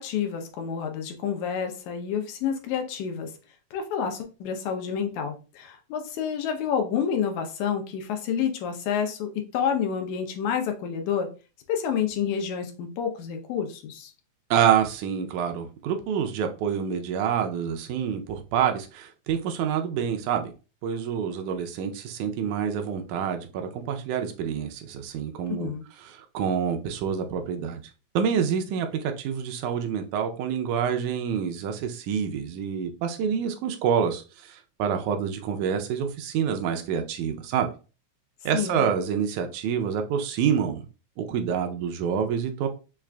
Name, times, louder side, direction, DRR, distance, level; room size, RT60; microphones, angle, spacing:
voice 1, 0.0-3.3 3.7-11.3 11.7-14.1 25.6-25.8 38.5-38.8, left 7 dB, 85° left, 4 dB, 2.1 m, -29 dB
voice 2, 14.5-20.5 20.8-25.7 26.0-27.8 28.2-37.7 38.5-40.9 41.2-42.7, right 8 dB, 90° right, 6 dB, 2.0 m, -27 dB
5.9 x 2.4 x 2.2 m, 0.33 s
omnidirectional pair, 3.3 m